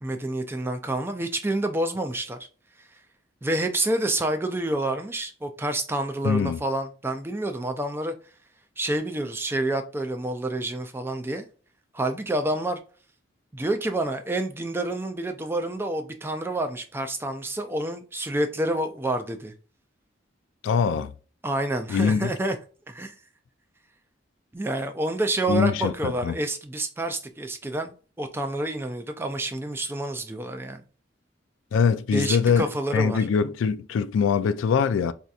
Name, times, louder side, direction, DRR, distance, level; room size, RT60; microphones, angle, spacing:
voice 1, 0.0-2.4 3.4-8.1 8.8-11.4 11.9-12.8 13.5-19.5 21.4-22.6 22.9-23.1 24.5-30.8 32.1-33.3, right 1 dB, 10° right, 0.3 m, -28 dB
voice 2, 6.2-6.6 20.6-21.1 21.9-22.3 25.5-26.3 31.7-35.1, left 6 dB, 85° left, 0.3 m, -23 dB
4.4 x 2.7 x 2.4 m
head